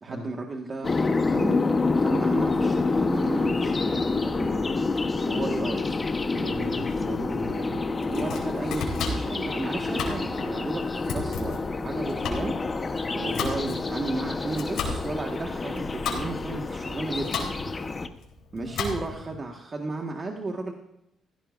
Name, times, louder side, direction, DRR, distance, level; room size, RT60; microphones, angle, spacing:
voice 1, 0.0-0.9 1.3-1.6 1.9-4.8 5.3-6.0 8.0-12.5 12.8-17.8 18.5-20.7, right 3 dB, 35° right, 2 dB, 1.6 m, -34 dB
sound 1, 0.8-18.1, left 3 dB, 30° left, 1.0 m, -27 dB
voice 2, 6.3-7.8 18.6-19.2, right 1 dB, 75° right, 1 dB, 6.2 m, -38 dB
Domestic sounds home sounds, 7.9-19.3, left 4 dB, 85° left, 3.6 m, -35 dB
16.0 x 16.0 x 2.6 m, 0.80 s
cardioid pair, 90°, 0 cm